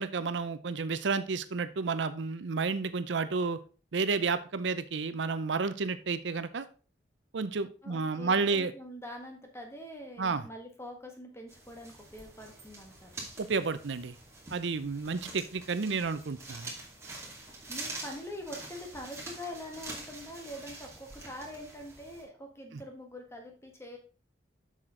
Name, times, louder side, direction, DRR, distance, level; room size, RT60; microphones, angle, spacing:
voice 1, 0.0-3.6 3.9-6.7 7.3-8.7 10.2-10.4 13.4-14.1 14.5-16.7, right 4 dB, 75° right, 13 dB, 0.6 m, -31 dB
voice 2, 7.8-13.3 17.7-24.0, left 1 dB, 15° left, 3 dB, 1.6 m, -44 dB
sound 1, 11.5-22.2, right 2 dB, 15° right, 2.4 m, -46 dB
7.6 x 6.5 x 3.8 m, 0.36 s
head